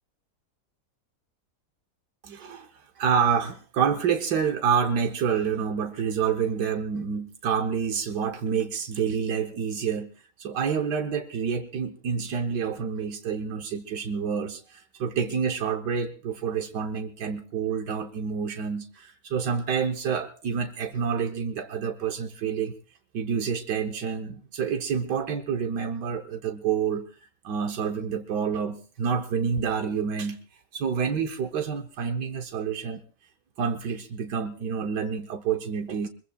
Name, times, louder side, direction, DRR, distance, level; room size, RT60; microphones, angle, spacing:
voice 1, 2.2-2.7 3.0-10.1 10.4-22.7 23.1-27.1 27.4-30.4 30.7-33.0 33.6-36.1, right 6 dB, 85° right, 5 dB, 1.6 m, -28 dB
24.0 x 22.0 x 2.3 m, 0.38 s
omnidirectional pair, 1.8 m